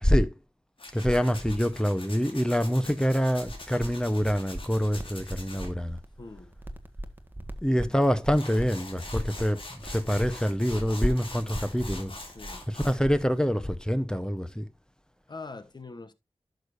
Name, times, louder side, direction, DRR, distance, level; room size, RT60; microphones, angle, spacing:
voice 1, 0.0-0.3 0.9-6.0 7.6-12.1 12.7-14.7, equal, 5° left, 0.9 m, -26 dB
Tools, 0.8-5.7 8.0-8.1 8.3-13.0, left 2 dB, 65° left, 2.8 m, -44 dB
voice 2, 2.7-3.0 6.2-6.5 7.7-7.9 12.3-12.7 15.3-16.1, left 3 dB, 45° left, 1.2 m, -44 dB
sound 1, 3.4-13.8, right 1 dB, 20° right, 1.4 m, -42 dB
11.5 x 6.6 x 2.6 m
cardioid pair, 45°, 10 cm